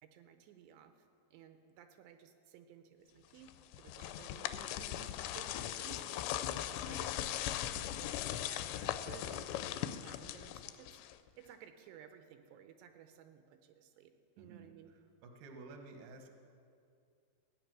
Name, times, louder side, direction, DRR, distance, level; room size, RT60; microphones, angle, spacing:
voice 1, 0.0-0.9 1.3-3.5 3.8-5.0 5.3-10.9 11.4-14.9, right 9 dB, 85° right, 7 dB, 2.9 m, -56 dB
sound 1, 3.5-11.3, left 12 dB, 85° left, 2.8 m, -39 dB
voice 2, 4.8-5.1 9.1-9.4 14.4-14.6 15.2-16.3, right 3 dB, 65° right, 4 dB, 2.0 m, -52 dB
15.5 x 9.3 x 6.1 m, 2.3 s
omnidirectional pair, 5.0 m